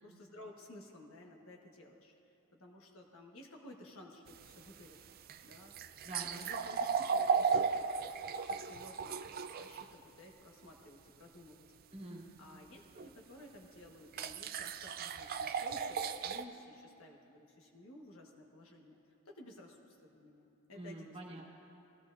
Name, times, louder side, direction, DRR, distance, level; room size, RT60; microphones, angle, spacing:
voice 1, 0.0-2.1 2.5-5.0 5.4-5.7 6.3-11.7 12.4-19.0 19.2-21.5, left 1 dB, 70° left, 0 dB, 1.4 m, -55 dB
sound 1, 4.3-9.9 13.0-13.1 14.1-16.4, right 5 dB, 45° right, 0.4 m, -35 dB
voice 2, 6.0-6.5 11.9-12.2 20.7-21.5, right 1 dB, 25° right, -2 dB, 1.6 m, -46 dB
19.0 x 15.0 x 2.6 m, 2.8 s
head